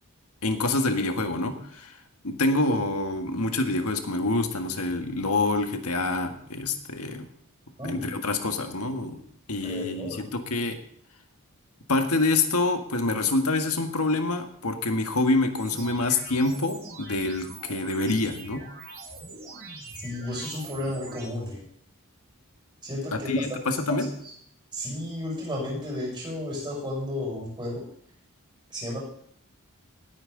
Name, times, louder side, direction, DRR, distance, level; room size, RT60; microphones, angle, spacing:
voice 1, 0.4-2.0 2.2-7.3 7.8-9.2 9.5-10.8 11.9-18.7 23.1-24.1, left 2 dB, 80° left, 6 dB, 1.6 m, -26 dB
voice 2, 9.6-10.2 20.0-21.6 22.8-23.4 23.9-24.0 24.7-27.8 28.7-29.0, left 1 dB, 20° right, -3 dB, 6.4 m, -33 dB
sound 1, 15.5-21.3, right 3 dB, 50° right, 5.4 m, -43 dB
19.0 x 9.0 x 3.9 m, 0.64 s
head